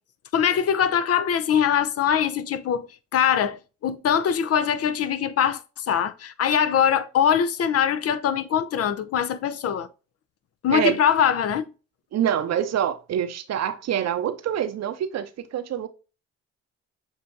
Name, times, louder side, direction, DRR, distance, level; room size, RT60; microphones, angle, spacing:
voice 1, 0.3-2.9 3.1-9.9 10.6-11.6, left 8 dB, 55° left, 0.6 m, -22 dB
voice 2, 12.1-15.9, right 10 dB, 60° right, 0.7 m, -26 dB
7.1 x 2.9 x 2.6 m
cardioid pair, 90°, 30 cm